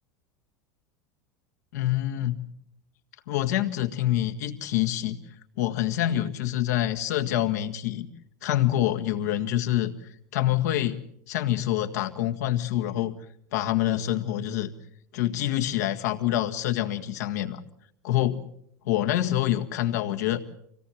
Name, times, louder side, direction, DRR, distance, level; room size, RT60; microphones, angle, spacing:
voice 1, 1.7-2.5 3.3-5.2 5.6-8.1 8.4-9.9 10.3-11.0 11.3-13.1 13.5-14.7 15.1-17.6 18.0-18.4 18.9-20.4, left 13 dB, 70° left, 6 dB, 1.8 m, -26 dB
26.0 x 18.0 x 7.2 m, 0.69 s
hypercardioid pair, 85°, 9 cm